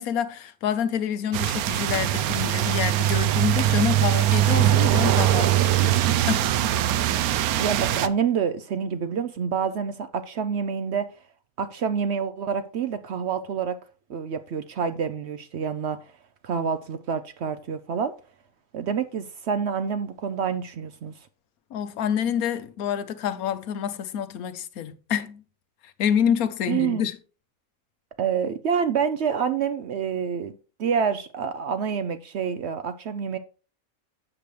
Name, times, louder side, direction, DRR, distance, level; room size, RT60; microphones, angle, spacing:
voice 1, 0.0-6.0 6.3-6.5 21.7-25.4 25.8-27.2, left 8 dB, 80° left, 1.2 m, -27 dB
sound 1, 1.3-8.1, right 13 dB, 85° right, 1.1 m, -22 dB
voice 2, 7.6-11.1 11.6-13.8 14.1-16.0 16.4-18.1 18.7-21.1 26.7-27.0 28.2-30.5 30.8-33.4, right 7 dB, 65° right, 0.7 m, -27 dB
8.4 x 6.7 x 3.2 m
omnidirectional pair, 1.5 m